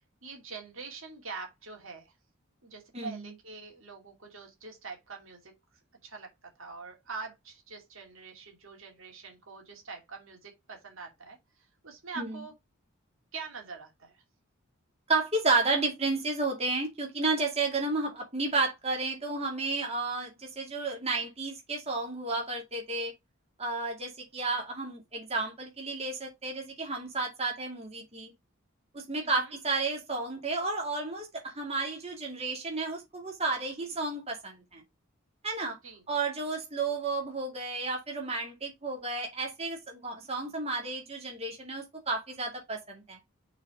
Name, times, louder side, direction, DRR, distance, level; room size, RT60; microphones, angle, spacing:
voice 1, 0.2-2.1 2.6-5.5 6.0-11.4 11.8-12.5 13.3-14.2 29.2-29.5 35.8-36.0, right 4 dB, 65° right, 2.5 m, -44 dB
voice 2, 2.9-3.3 12.2-12.3 15.1-23.1 23.6-28.3 28.9-34.8 35.4-35.8 36.1-43.2, right 3 dB, 30° right, 2.3 m, -32 dB
6.2 x 4.1 x 4.8 m
head